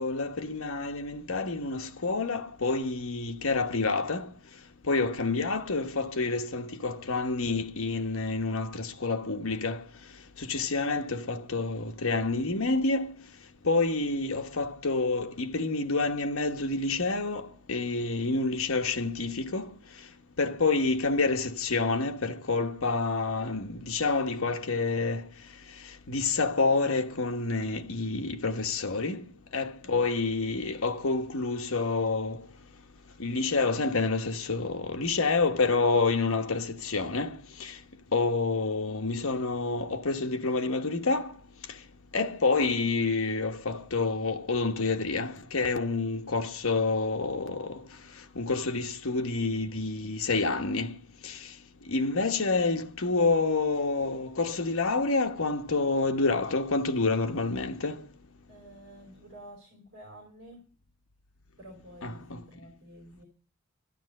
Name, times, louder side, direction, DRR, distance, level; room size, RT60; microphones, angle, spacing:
voice 1, 0.0-4.3 4.9-9.8 10.5-13.1 13.6-17.4 17.7-19.7 20.4-25.3 26.1-29.2 29.5-32.4 33.2-37.7 38.1-41.3 42.1-47.8 48.4-50.9 51.2-51.3 51.9-58.0 62.0-62.4, left 3 dB, 75° left, 1.2 m, -28 dB
voice 2, 58.5-60.6 61.6-63.3, right 1 dB, 50° right, 4.9 m, -50 dB
12.0 x 11.0 x 6.5 m
head